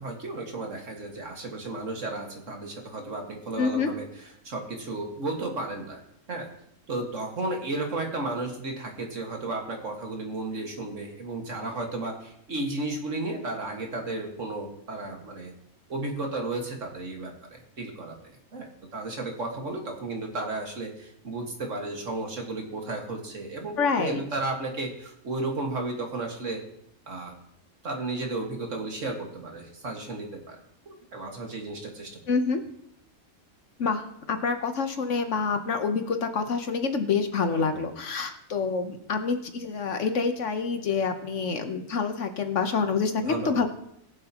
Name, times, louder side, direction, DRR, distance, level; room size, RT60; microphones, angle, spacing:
voice 1, 0.0-6.5 6.9-15.5 15.9-18.2 18.5-26.6 27.1-27.4 27.8-32.2 37.5-37.9 43.2-43.6, right 2 dB, 55° right, 1 dB, 2.1 m, -34 dB
voice 2, 3.6-3.9 23.8-24.2 32.3-32.6 33.8-43.7, left 5 dB, 60° left, 7 dB, 1.2 m, -27 dB
21.5 x 7.6 x 3.0 m, 0.73 s
omnidirectional pair, 1.5 m